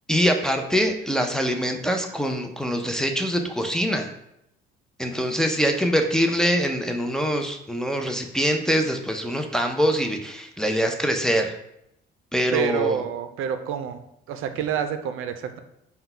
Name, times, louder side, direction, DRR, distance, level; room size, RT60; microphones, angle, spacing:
voice 1, 0.1-4.1 5.0-11.6 12.3-13.0, equal, 5° left, 3 dB, 0.5 m, -24 dB
voice 2, 12.5-14.0 14.3-15.6, right 8 dB, 75° right, 9 dB, 0.5 m, -28 dB
3.8 x 2.2 x 4.3 m, 0.79 s
cardioid pair, 85°, 21 cm